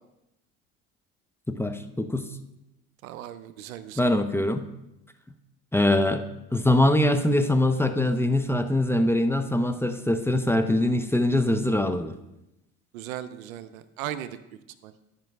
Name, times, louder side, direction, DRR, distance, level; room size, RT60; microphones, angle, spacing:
voice 1, 1.5-2.3 4.0-4.7 5.7-6.2 6.5-12.1, left 1 dB, 5° left, 8 dB, 0.5 m, -23 dB
voice 2, 3.0-4.1 12.9-14.4 14.8-14.9, right 11 dB, 90° right, 13 dB, 0.6 m, -37 dB
12.0 x 5.3 x 3.4 m, 0.90 s
hypercardioid pair, 70°, 40 cm